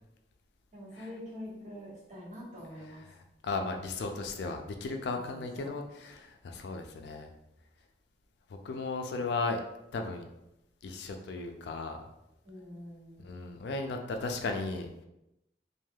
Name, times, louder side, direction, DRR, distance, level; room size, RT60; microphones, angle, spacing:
voice 1, 0.7-3.0 5.1-5.7 9.2-9.3 12.4-13.2, left 1 dB, 40° right, -9 dB, 1.4 m, -45 dB
voice 2, 3.1-7.3 8.5-9.6 9.9-10.2 10.8-12.0 13.2-15.0, left 3 dB, 70° left, 4 dB, 0.3 m, -36 dB
3.2 x 2.5 x 2.3 m, 0.88 s
head